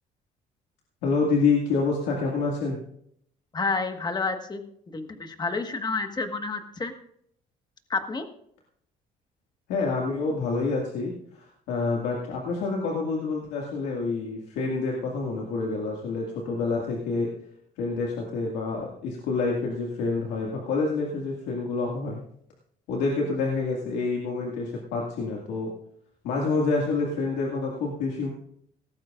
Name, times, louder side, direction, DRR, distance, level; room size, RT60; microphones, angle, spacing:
voice 1, 1.0-2.8 9.7-17.3 17.8-22.2 22.9-25.7 26.2-28.3, left 4 dB, 85° left, -2 dB, 2.2 m, -27 dB
voice 2, 3.5-4.6 4.9-6.9 7.9-8.2, left 4 dB, 25° left, 6 dB, 1.5 m, -29 dB
17.5 x 14.0 x 2.5 m, 0.70 s
cardioid pair, 110°, 17 cm